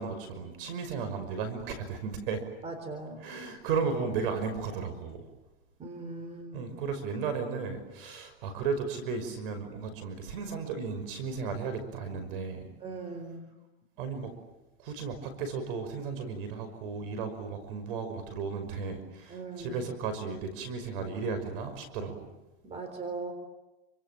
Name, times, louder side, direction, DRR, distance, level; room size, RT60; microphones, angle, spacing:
voice 1, 0.0-2.4 3.2-5.2 6.5-12.7 14.0-14.3 14.8-22.3, right 5 dB, 60° right, 9 dB, 5.7 m, -34 dB
voice 2, 2.6-3.3 5.8-6.7 12.8-13.5 19.3-19.8 22.6-23.3, right 3 dB, 20° right, 7 dB, 4.0 m, -39 dB
29.5 x 25.5 x 7.6 m, 1.0 s
supercardioid pair, 145°, 31 cm